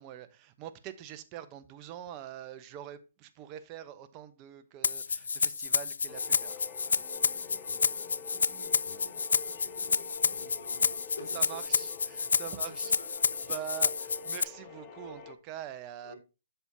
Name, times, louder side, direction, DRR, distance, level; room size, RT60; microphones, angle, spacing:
voice 1, 0.0-6.6 11.3-12.9 13.5-16.1, right 11 dB, 25° right, 0.8 m, -44 dB
Rattle (instrument), 4.8-14.4, left 5 dB, 85° left, 0.3 m, -29 dB
sound 1, 6.1-15.3, left 4 dB, 30° left, 0.9 m, -47 dB
voice 2, 6.7-11.4 12.3-12.5 12.8-13.5 16.0-16.2, left 3 dB, 70° left, 4.2 m, -52 dB
7.7 x 7.1 x 2.7 m
hypercardioid pair, 150°, 0 cm